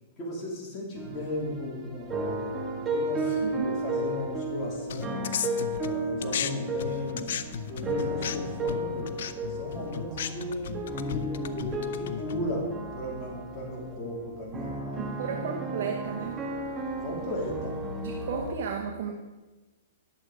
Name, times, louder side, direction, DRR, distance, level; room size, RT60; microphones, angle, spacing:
voice 1, 0.2-2.6 2.9-5.4 5.8-7.4 7.7-9.1 9.5-15.2 17.0-17.8 18.3-18.4, left 1 dB, 25° left, -4 dB, 2.8 m, -36 dB
sound 1, 0.9-18.5, right 2 dB, 20° right, 1.6 m, -34 dB
voice 2, 3.2-3.8 15.0-16.4 18.0-19.1, right 6 dB, 60° right, 2 dB, 1.2 m, -34 dB
sound 2, 4.9-6.5 6.8-12.5, left 9 dB, 70° left, 0.6 m, -35 dB
10.5 x 7.6 x 4.8 m, 1.2 s
hypercardioid pair, 140°, 0 cm